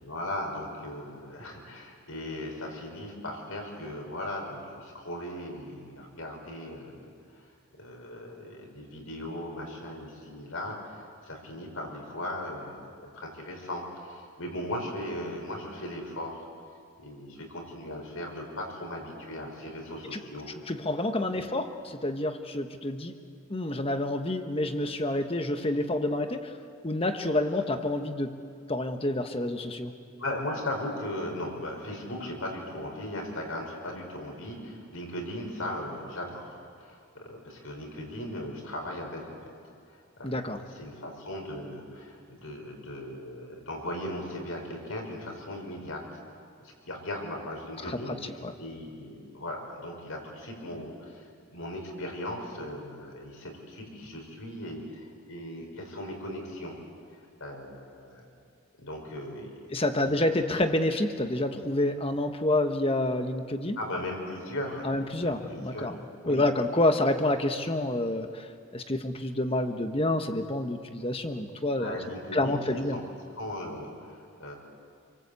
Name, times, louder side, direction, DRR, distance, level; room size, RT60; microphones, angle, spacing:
voice 1, 0.0-7.4 7.8-16.5 17.0-20.5 21.3-21.4 30.2-39.4 39.9-46.0 46.6-56.8 57.4-58.3 58.8-59.7 60.4-60.6 63.8-64.9 65.2-65.9 66.2-66.4 71.8-72.6 72.9-73.0 73.4-74.5, left 1 dB, 70° left, 1 dB, 5.5 m, -38 dB
voice 2, 20.7-23.1 23.5-26.5 26.8-28.3 28.7-29.9 40.2-40.6 47.8-48.5 59.7-63.8 64.8-66.0 66.2-72.0 72.3-73.0, left 1 dB, 25° left, 7 dB, 1.3 m, -28 dB
28.0 x 23.5 x 8.4 m, 2.3 s
head